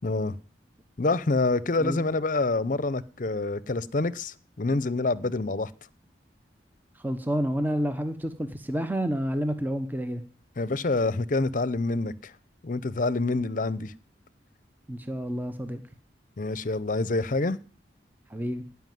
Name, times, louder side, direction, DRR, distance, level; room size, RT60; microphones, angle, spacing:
voice 1, 0.0-0.4 1.0-5.7 10.6-12.3 12.6-13.9 16.4-17.6, left 3 dB, 45° left, 0.7 m, -27 dB
voice 2, 6.9-10.2 14.9-15.8 18.3-18.6, equal, 10° right, 0.8 m, -29 dB
17.0 x 5.8 x 9.4 m
head